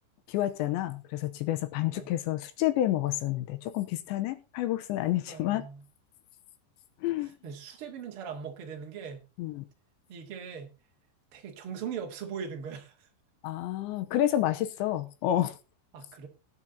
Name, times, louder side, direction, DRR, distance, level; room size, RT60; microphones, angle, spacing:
voice 1, 0.3-5.7 7.0-7.3 9.4-9.6 13.4-15.6, left 13 dB, 80° left, 3.0 m, -29 dB
voice 2, 5.3-5.8 7.2-9.2 10.1-10.7 11.3-13.1 15.9-16.3, right 7 dB, 45° right, 2.0 m, -40 dB
19.0 x 6.3 x 4.1 m
omnidirectional pair, 5.5 m